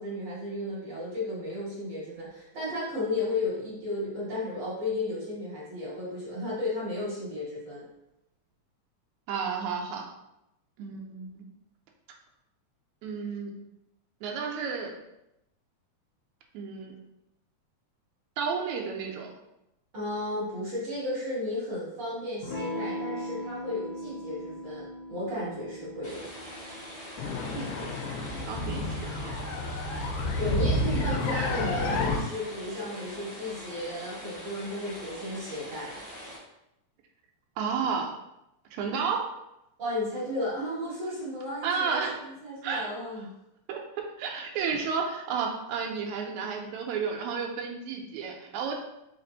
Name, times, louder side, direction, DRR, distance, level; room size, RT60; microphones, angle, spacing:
voice 1, 0.0-7.9 19.9-26.3 30.2-36.0 39.8-43.3, left 1 dB, 40° right, -8 dB, 2.0 m, -34 dB
voice 2, 9.3-10.1 10.8-11.4 13.0-13.5 14.2-15.0 16.5-17.0 18.4-19.3 27.6-29.3 30.9-31.1 37.6-38.1 38.7-39.2 41.6-42.2 42.6-42.9 43.7-43.8 44.2-48.7, right 5 dB, 80° right, 2 dB, 1.9 m, -32 dB
Electric guitar / Strum, 22.4-27.5, equal, 70° left, 1.0 m, -39 dB
sound 1, 26.0-36.4, equal, 40° left, 0.6 m, -43 dB
sound 2, 27.2-32.2, left 2 dB, 85° left, 2.1 m, -30 dB
4.8 x 2.6 x 3.9 m, 0.86 s
omnidirectional pair, 3.5 m